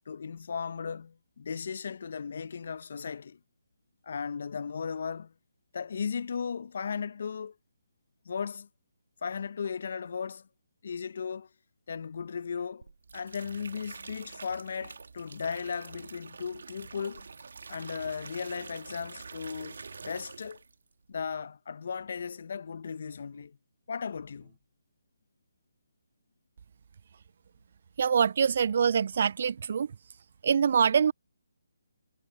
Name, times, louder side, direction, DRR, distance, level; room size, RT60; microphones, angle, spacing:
voice 1, 0.1-3.4 4.0-5.3 5.7-7.5 8.2-8.7 9.2-10.5 10.8-11.5 11.9-12.9 13.1-17.3 17.7-20.6 21.1-23.6 23.9-24.5, left 6 dB, 55° left, 0.9 m, -36 dB
sound 1, 12.8-20.8 21.1-21.5, right 4 dB, 70° right, 2.5 m, -46 dB
sound 2, 22.0-22.5 23.1-23.6 24.1-24.7, right 14 dB, 30° right, 4.6 m, -66 dB
voice 2, 28.0-29.9 30.4-31.1, right 7 dB, 50° right, 0.3 m, -24 dB
figure-of-eight pair, 150°, 0 cm